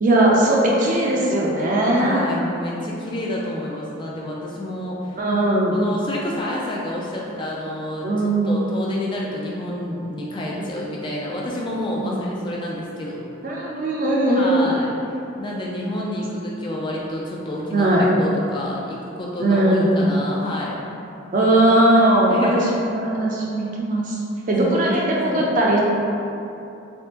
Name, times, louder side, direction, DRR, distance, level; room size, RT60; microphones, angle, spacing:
voice 1, 0.0-2.3 5.1-5.8 8.0-8.7 10.6-10.7 11.9-12.2 13.4-14.8 17.7-18.1 19.4-19.9 21.3-24.2 24.5-25.8, right 1 dB, 40° right, -3 dB, 0.5 m, -19 dB
voice 2, 2.0-5.2 5.7-8.1 8.4-13.3 14.3-14.9 15.4-20.8 22.3-22.7 25.0-25.5, left 1 dB, 20° left, -4 dB, 0.3 m, -29 dB
3.4 x 3.4 x 2.9 m, 2.8 s
head